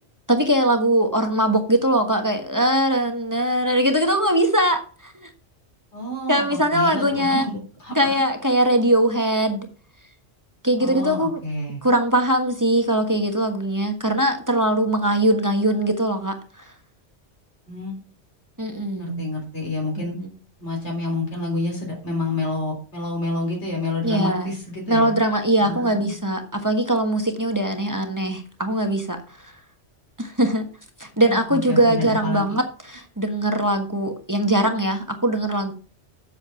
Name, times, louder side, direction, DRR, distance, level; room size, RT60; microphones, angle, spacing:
voice 1, 0.3-5.3 6.3-7.5 7.9-9.6 10.6-11.4 11.8-16.7 18.6-19.2 20.0-20.3 24.0-24.5 24.9-29.5 30.2-30.7 31.0-35.7, right 1 dB, 15° right, 5 dB, 1.3 m, -21 dB
voice 2, 5.9-8.2 10.8-11.8 17.7-18.0 19.0-20.2 20.6-25.2 25.6-26.1 31.2-32.6, left 2 dB, 75° left, -1 dB, 3.9 m, -29 dB
8.0 x 7.0 x 5.7 m, 0.37 s
omnidirectional pair, 1.2 m